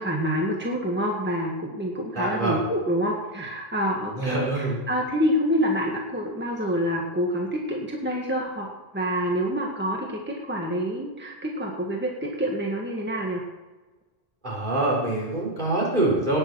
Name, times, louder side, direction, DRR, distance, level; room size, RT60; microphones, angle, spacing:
voice 1, 0.0-8.7 8.9-13.4, equal, 10° right, -1 dB, 1.7 m, -27 dB
voice 2, 2.1-2.6 4.1-4.7 14.4-16.4, right 2 dB, 50° right, -4 dB, 4.9 m, -25 dB
18.5 x 6.8 x 6.3 m, 1.2 s
omnidirectional pair, 1.0 m